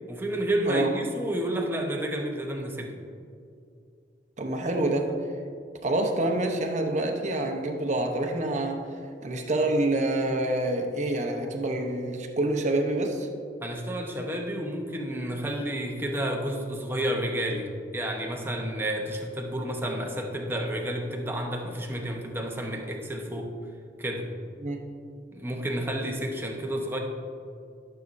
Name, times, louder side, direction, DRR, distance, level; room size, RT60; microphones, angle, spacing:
voice 1, 0.1-2.9 13.6-23.5 24.0-24.3 25.3-27.0, right 1 dB, 10° right, 0 dB, 0.9 m, -30 dB
voice 2, 4.4-5.3 5.8-8.8 9.2-13.3 24.6-24.9, right 1 dB, 40° right, 3 dB, 0.9 m, -27 dB
12.5 x 6.9 x 2.6 m, 2.4 s
head